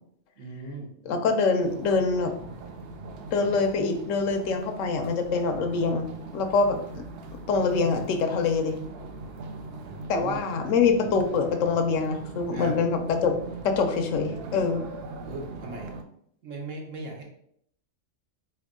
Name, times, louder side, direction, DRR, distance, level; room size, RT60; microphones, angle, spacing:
voice 1, 0.4-0.9 10.1-10.4 12.5-12.8 15.3-15.9 16.4-17.2, right 2 dB, 80° right, 1 dB, 1.4 m, -37 dB
voice 2, 1.1-2.3 3.3-6.1 6.3-7.0 7.5-8.8 10.1-13.3 13.6-14.8, left 4 dB, 90° left, 6 dB, 1.1 m, -25 dB
sound 1, 1.6-16.0, right 3 dB, 65° right, 0.7 m, -41 dB
4.1 x 3.4 x 3.6 m, 0.68 s
omnidirectional pair, 1.3 m